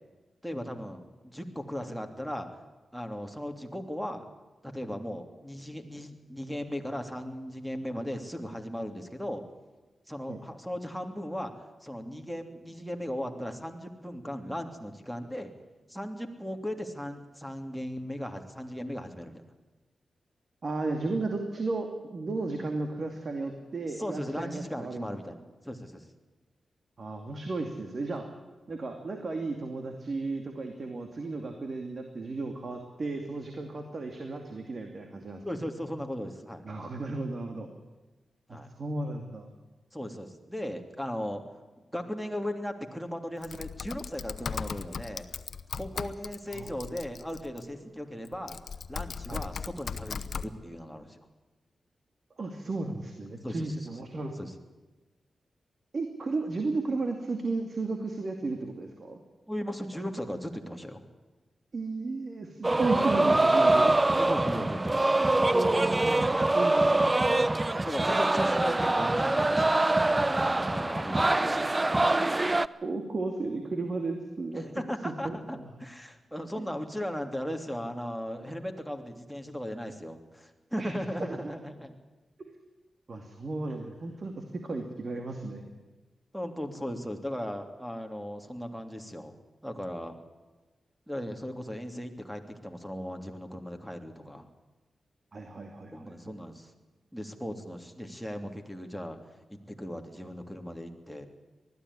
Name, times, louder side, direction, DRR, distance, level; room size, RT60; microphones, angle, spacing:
voice 1, 0.4-2.5 2.9-4.2 4.6-9.4 10.1-15.5 15.9-19.3 23.9-26.1 35.4-36.6 38.5-38.7 39.9-41.4 41.9-45.2 45.7-48.6 48.9-51.2 53.4-53.9 54.4-54.5 59.5-61.0 64.2-65.1 67.8-71.6 74.5-81.9 86.3-89.3 89.6-90.2 91.1-94.5 95.9-96.7 97.1-99.2 99.5-101.3, equal, ahead, 6 dB, 3.1 m, -37 dB
voice 2, 20.6-25.1 27.0-28.2 28.7-35.4 36.7-37.7 38.5-39.5 46.5-46.7 49.3-49.4 52.4-54.3 55.9-59.2 61.7-63.9 65.5-67.2 70.5-70.6 72.8-74.6 75.0-75.7 76.6-76.7 80.8-80.9 82.5-82.6 83.1-85.8 95.3-96.3, right 3 dB, 55° right, 4 dB, 2.5 m, -34 dB
Typing, 43.4-47.6 48.3-50.5, left 6 dB, 70° left, 0.9 m, -38 dB
sound 1, 62.6-72.7, right 2 dB, 25° right, 0.7 m, -24 dB
20.0 x 13.5 x 10.0 m, 1.2 s
cardioid pair, 55°, 0 cm